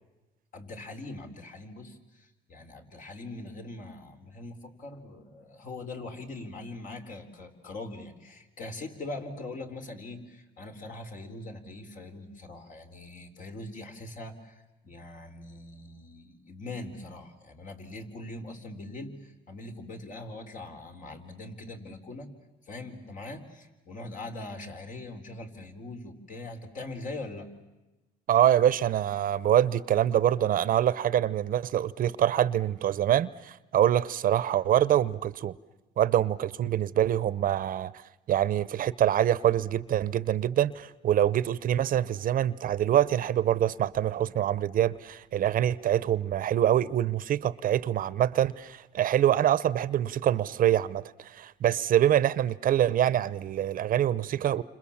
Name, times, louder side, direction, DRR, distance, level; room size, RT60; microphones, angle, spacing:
voice 1, 0.5-22.3 22.7-27.5, left 2 dB, 50° left, 4.3 m, -42 dB
voice 2, 28.3-35.5 36.0-37.9 38.3-54.6, right 11 dB, 55° right, 0.9 m, -25 dB
29.5 x 26.5 x 7.3 m
cardioid pair, 110°, 17 cm